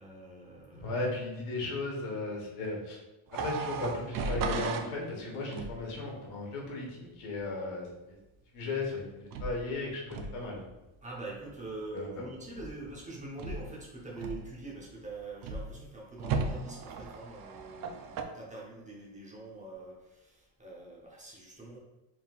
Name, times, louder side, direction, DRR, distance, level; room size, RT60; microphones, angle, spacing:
voice 1, 0.0-1.0 11.0-21.8, right 2 dB, 15° right, -4 dB, 0.8 m, -44 dB
voice 2, 0.7-3.0 3.3-8.2 8.5-10.6 11.9-12.3, left 2 dB, 85° left, -1 dB, 1.4 m, -36 dB
sound 1, 3.3-4.9 5.5-5.9 9.3-9.7 10.1-10.4 12.5-12.9 13.4-13.8 14.2-14.7 15.4-15.8 16.2-18.2, right 4 dB, 45° right, 0.4 m, -35 dB
4.5 x 3.6 x 2.4 m, 1.0 s
cardioid pair, 150°, 50 cm